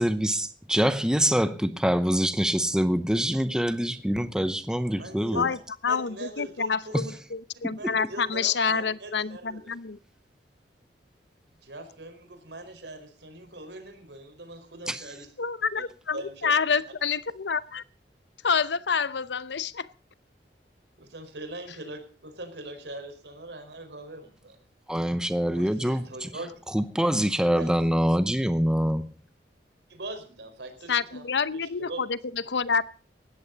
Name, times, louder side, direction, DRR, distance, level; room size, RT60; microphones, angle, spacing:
voice 1, 0.0-5.5 6.9-7.1 7.6-8.1 14.9-15.1 24.9-26.3 26.7-29.1, equal, 5° right, 0.8 m, -25 dB
voice 2, 4.9-5.6 5.9-7.0 7.8-9.8 11.6-15.3 15.7-15.8 16.1-16.8 21.0-24.6 25.5-26.6 27.6-27.7 29.9-31.3 31.5-32.1, right 1 dB, 75° right, 4.9 m, -41 dB
voice 3, 5.8-10.0 15.4-17.8 18.4-19.9 30.9-32.8, left 5 dB, 80° left, 0.8 m, -28 dB
18.5 x 14.0 x 4.1 m
head